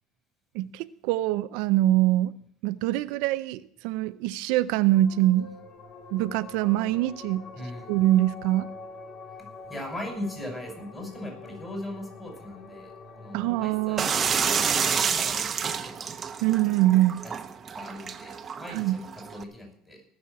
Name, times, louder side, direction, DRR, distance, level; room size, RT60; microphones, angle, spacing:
voice 1, 0.5-2.4 2.6-5.5 6.1-7.5 7.9-8.7 13.3-14.1 16.4-17.2 18.7-19.0, right 14 dB, 75° right, 0.5 m, -24 dB
sound 1, 4.9-17.8, left 4 dB, 40° left, 2.2 m, -46 dB
voice 2, 7.6-7.9 9.7-14.6 14.8-16.0 17.2-17.3 17.7-18.8 19.2-20.0, left 1 dB, 15° left, 5.8 m, -39 dB
sound 2, 14.0-19.4, right 6 dB, 30° right, 1.0 m, -29 dB
19.0 x 6.3 x 8.2 m
supercardioid pair, 120°, 0 cm